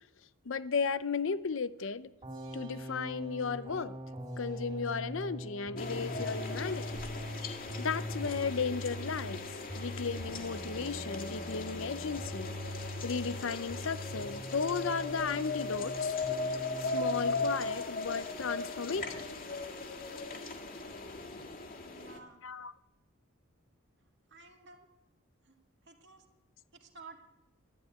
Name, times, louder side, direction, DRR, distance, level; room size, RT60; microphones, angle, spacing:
voice 1, 0.5-2.1 2.5-4.0 4.4-7.0 7.6-9.4 9.7-12.5 13.0-16.2 16.8-19.2 22.4-22.7, left 5 dB, 60° left, 14 dB, 0.6 m, -35 dB
sound 1, 2.2-16.0 16.2-17.4, equal, 25° right, 2.9 m, -42 dB
sound 2, 5.8-22.2, left 3 dB, 40° left, 1.9 m, -38 dB
voice 2, 21.8-22.4 24.3-24.8 25.5-25.6 25.9-26.2 26.7-27.2, right 4 dB, 55° right, 3 dB, 2.1 m, -53 dB
12.0 x 11.5 x 9.8 m, 0.92 s
head